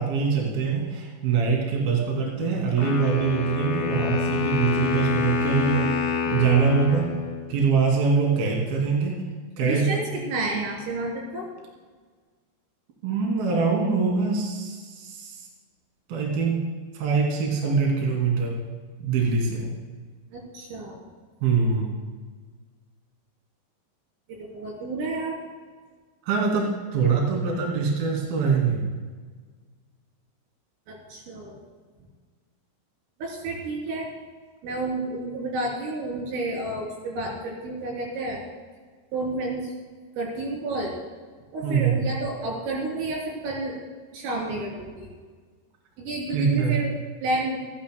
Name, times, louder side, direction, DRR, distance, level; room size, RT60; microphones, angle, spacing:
voice 1, 0.0-6.0 6.3-7.1 7.5-9.2 9.6-9.9 13.0-15.4 16.1-16.6 16.9-18.6 19.0-19.7 21.4-22.0 26.2-29.0 41.6-42.0 46.3-46.8, right 5 dB, 55° right, -1 dB, 4.1 m, -23 dB
Wind instrument woodwind instrument, 2.8-7.8, left 6 dB, 60° left, 3.3 m, -27 dB
voice 2, 9.6-11.5 20.3-21.1 24.3-25.4 30.9-31.6 33.2-34.1 34.6-38.4 39.1-39.7 40.2-40.9 41.5-43.8 44.1-45.1 46.0-47.6, right 2 dB, 80° right, -2 dB, 6.1 m, -30 dB
27.5 x 12.5 x 2.2 m, 1.5 s
omnidirectional pair, 5.9 m